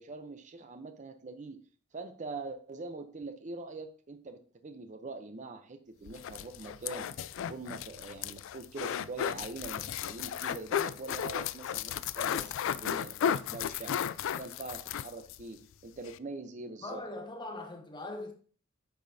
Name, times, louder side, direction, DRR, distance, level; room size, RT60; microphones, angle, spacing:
voice 1, 0.0-1.6 1.9-7.1 7.4-13.9 14.4-17.0, right 3 dB, 35° right, 0.6 m, -43 dB
sound 1, 6.1-15.4 15.7-15.8 16.0-16.2, left 9 dB, 65° left, 0.3 m, -34 dB
voice 2, 16.8-18.3, left 2 dB, 20° left, 1.1 m, -40 dB
8.9 x 5.2 x 2.7 m
head